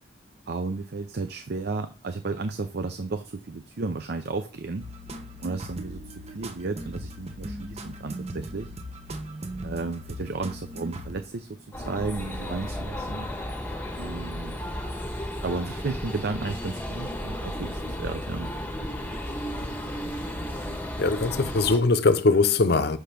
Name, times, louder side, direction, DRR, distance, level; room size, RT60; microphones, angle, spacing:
voice 1, 0.5-4.8 5.4-6.0 6.3-8.7 9.6-11.6 11.9-13.3 14.0-14.6 15.4-18.5, right 3 dB, 55° right, 0.5 m, -33 dB
sound 1, 4.8-11.6, right 1 dB, 35° right, 0.9 m, -38 dB
sound 2, 11.7-21.8, left 1 dB, 10° left, 1.3 m, -34 dB
voice 2, 21.0-23.0, left 3 dB, 60° left, 0.7 m, -21 dB
6.5 x 5.1 x 5.8 m
head